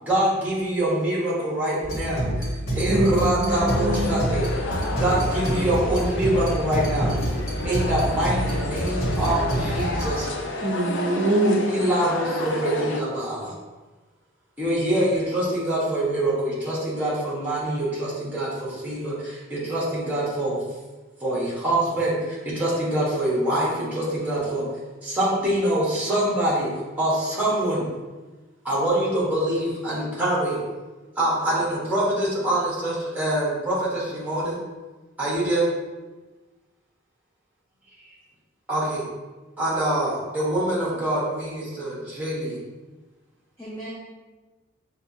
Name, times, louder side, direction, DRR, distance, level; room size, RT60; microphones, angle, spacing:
voice 1, 0.0-7.1 7.6-10.3 11.7-13.5 14.6-20.6 21.2-24.7 25.0-26.7 27.0-27.8 28.6-30.6 31.2-34.6 35.2-35.7 38.7-39.1 39.6-42.6, right 1 dB, 5° right, -6 dB, 1.2 m, -25 dB
sound 1, 1.8-10.0, right 1 dB, 90° left, 1.3 m, -27 dB
voice 2, 2.9-4.2 10.6-11.7, right 1 dB, 40° right, -6 dB, 0.5 m, -23 dB
sound 2, 3.5-13.0, left 2 dB, 60° left, 0.4 m, -31 dB
voice 3, 4.8-5.2 5.5-5.9 43.6-43.9, right 1 dB, 15° left, -9 dB, 0.6 m, -36 dB
5.6 x 2.6 x 2.8 m, 1.2 s
head